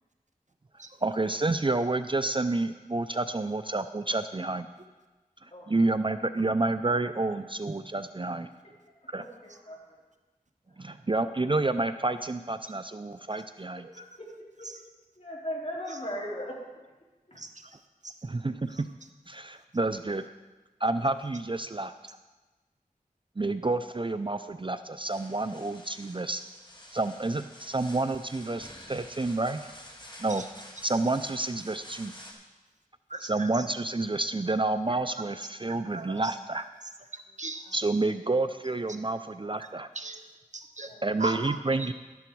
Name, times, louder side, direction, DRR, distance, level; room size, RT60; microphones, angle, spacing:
voice 1, 1.0-4.7 5.4-8.5 9.1-9.2 10.8-13.8 18.2-18.9 19.3-20.3 20.8-21.9 23.4-26.4 26.9-29.7 30.2-30.4 30.8-32.1 33.2-36.6 37.7-39.9 41.0-41.9, right 2 dB, 35° right, 10 dB, 0.4 m, -29 dB
voice 2, 9.2-10.0 10.7-10.8 13.8-14.3 14.6-14.7 15.2-16.6 17.3-17.4 37.6-37.7 40.9-41.2, equal, 45° left, -3 dB, 3.4 m, -39 dB
voice 3, 17.3-17.8 18.0-18.1 18.7-18.8 30.3-30.5 33.1-33.6 34.9-35.0 35.9-36.6 37.1-37.8 39.6-39.7 39.9-40.2 40.5-40.9 41.2-41.9, right 3 dB, 55° right, 6 dB, 0.9 m, -38 dB
sound 1, 25.1-32.3, left 1 dB, 30° left, 2.2 m, -49 dB
12.0 x 10.5 x 4.6 m, 1.2 s
wide cardioid pair, 45°, 15 cm